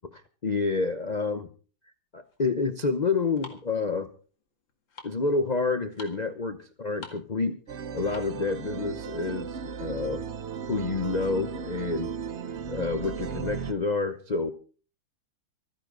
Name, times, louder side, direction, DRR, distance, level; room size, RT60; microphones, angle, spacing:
voice 1, 0.4-1.5 2.1-4.1 5.0-7.6 7.9-10.3 10.7-12.1 12.7-14.5, left 4 dB, 45° left, 10 dB, 0.5 m, -28 dB
sound 1, 2.2-8.5, left 3 dB, 75° left, 2.8 m, -49 dB
sound 2, 7.7-13.7, right 7 dB, 55° right, 0.8 m, -36 dB
25.5 x 10.0 x 3.9 m, 0.38 s
omnidirectional pair, 2.1 m